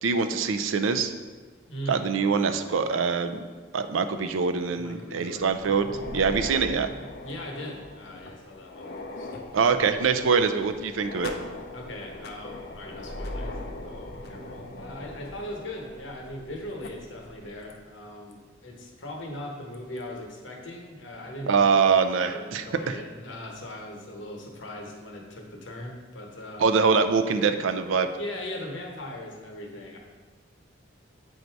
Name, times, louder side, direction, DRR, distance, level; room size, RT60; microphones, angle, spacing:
voice 1, 0.0-1.1 1.9-3.4 3.7-5.9 6.1-6.9 9.5-11.3 21.5-23.0 26.6-28.1, right 5 dB, 85° right, 8 dB, 0.4 m, -24 dB
voice 2, 1.7-2.1 4.8-5.8 6.1-6.2 7.2-9.3 11.7-21.6 22.2-26.6 28.2-30.0, left 1 dB, 70° left, 0 dB, 1.0 m, -39 dB
sound 1, 5.3-17.8, equal, 40° right, 1.0 m, -44 dB
sound 2, 5.7-16.5 16.8-16.9 17.7-17.8 18.3-18.4 19.7-20.0, left 3 dB, 55° left, 0.5 m, -42 dB
7.9 x 2.7 x 4.5 m, 1.4 s
head